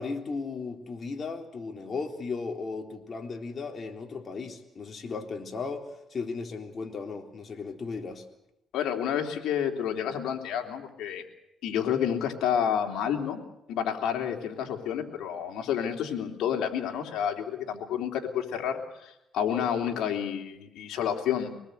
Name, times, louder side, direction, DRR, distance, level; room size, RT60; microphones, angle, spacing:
voice 1, 0.0-8.2, left 4 dB, 40° left, 3 dB, 3.7 m, -36 dB
voice 2, 8.7-11.3 11.6-13.4 13.7-21.5, left 8 dB, 85° left, 3 dB, 3.3 m, -29 dB
25.0 x 19.5 x 8.1 m, 0.85 s
cardioid pair, 90°, 0 cm